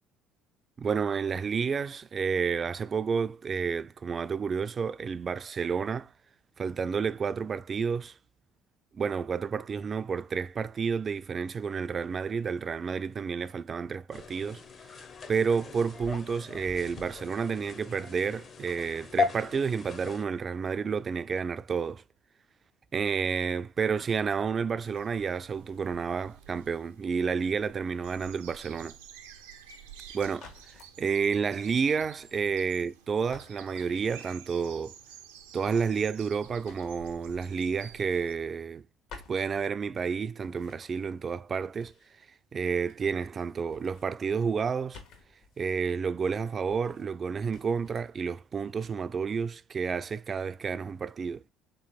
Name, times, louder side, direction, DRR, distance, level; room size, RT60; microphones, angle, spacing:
voice 1, 0.8-6.1 6.6-8.2 8.9-14.6 15.3-22.0 22.9-28.9 30.1-34.9 35.5-38.8 39.3-41.9 42.5-45.0 45.6-51.4, right 6 dB, 40° right, 0.3 m, -30 dB
sound 1, 14.1-20.2, left 5 dB, 45° left, 0.7 m, -37 dB
sound 2, 24.8-38.3, right 8 dB, 85° right, 0.6 m, -51 dB
sound 3, 30.3-31.0 32.0-33.0 33.3-34.3 35.6-37.5 37.8-38.8 39.1-40.1 40.4-42.2 42.5-43.4 43.6-45.8 46.7-47.2 47.5-48.1 48.5-49.0, left 4 dB, 70° left, 1.2 m, -54 dB
3.5 x 3.1 x 4.1 m
hypercardioid pair, 60°, 0 cm